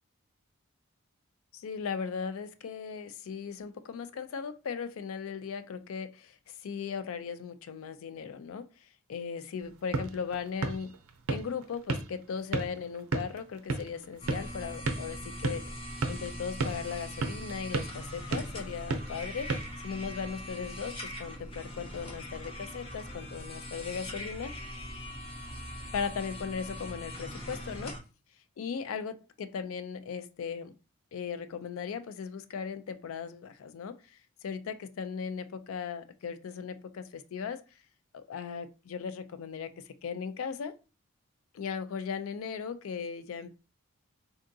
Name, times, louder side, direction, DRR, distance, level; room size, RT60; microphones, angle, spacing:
voice 1, 1.5-10.9 11.3-19.5 19.8-24.5 25.9-28.0 28.6-30.7 31.1-37.6 38.1-40.8 41.5-43.5, left 6 dB, 75° left, 0.4 m, -38 dB
sound 1, 9.6-20.4, right 3 dB, 90° right, 0.5 m, -36 dB
sound 2, 14.2-28.0, equal, 25° left, 0.6 m, -41 dB
3.7 x 2.3 x 2.6 m
head